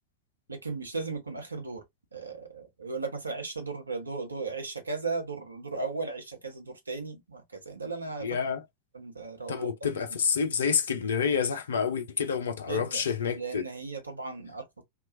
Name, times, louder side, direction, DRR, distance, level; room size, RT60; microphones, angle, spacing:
voice 1, 0.5-1.8 2.1-8.4 8.9-9.9 12.7-13.1 13.3-14.8, right 4 dB, 80° right, 0.8 m, -36 dB
voice 2, 8.2-8.6 9.5-13.6, left 6 dB, 65° left, 0.5 m, -28 dB
2.9 x 2.3 x 2.5 m
figure-of-eight pair, 90°, 0 cm